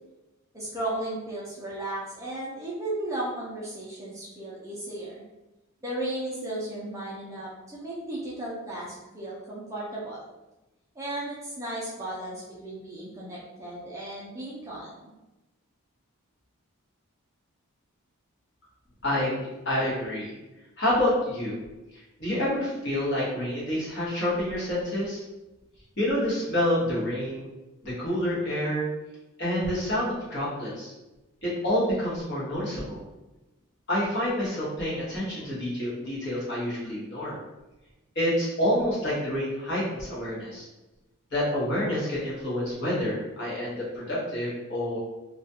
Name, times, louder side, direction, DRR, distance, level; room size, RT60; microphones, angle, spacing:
voice 1, 0.5-5.2 5.8-10.2 11.0-15.1, right 1 dB, 15° right, -7 dB, 0.4 m, -35 dB
voice 2, 19.0-19.4 19.6-20.3 20.8-21.6 21.9-25.2 26.0-27.5 27.8-28.8 29.4-30.9 31.4-33.0 33.9-37.4 38.1-40.6 41.3-45.0, left 1 dB, 50° left, -7 dB, 1.1 m, -28 dB
2.4 x 2.2 x 2.7 m, 1.0 s
head